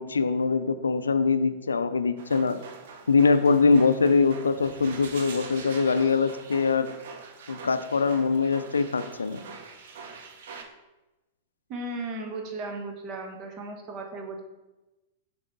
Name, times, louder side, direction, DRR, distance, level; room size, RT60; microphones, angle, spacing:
voice 1, 0.0-2.6 3.1-6.9 7.5-9.5, left 4 dB, 80° left, 11 dB, 0.4 m, -23 dB
sound 1, 2.2-10.6, right 5 dB, 60° right, 0.8 m, -44 dB
voice 2, 11.7-14.4, right 2 dB, 40° right, 3 dB, 1.1 m, -36 dB
6.7 x 3.8 x 3.7 m, 1.0 s
figure-of-eight pair, 100°, 0 cm